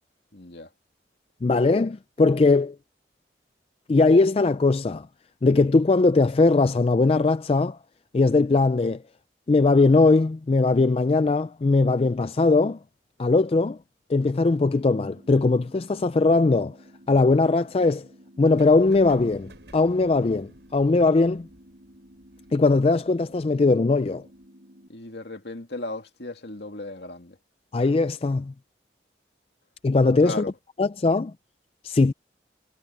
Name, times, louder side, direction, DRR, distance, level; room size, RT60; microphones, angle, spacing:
voice 1, 0.3-0.7 24.9-27.4 30.2-30.5, left 2 dB, 65° left, 2.5 m, -36 dB
voice 2, 1.4-2.8 3.9-5.1 5.4-7.8 8.1-9.0 9.5-12.8 13.2-13.8 14.1-16.8 17.1-18.1 18.4-21.5 22.5-24.3 27.7-28.5 29.8-30.4 30.8-31.3 31.8-32.1, left 3 dB, 35° left, 0.4 m, -20 dB
sound 1, 14.9-24.9, equal, 55° right, 7.0 m, -52 dB
sound 2, 18.5-24.4, right 1 dB, 75° right, 6.0 m, -54 dB
head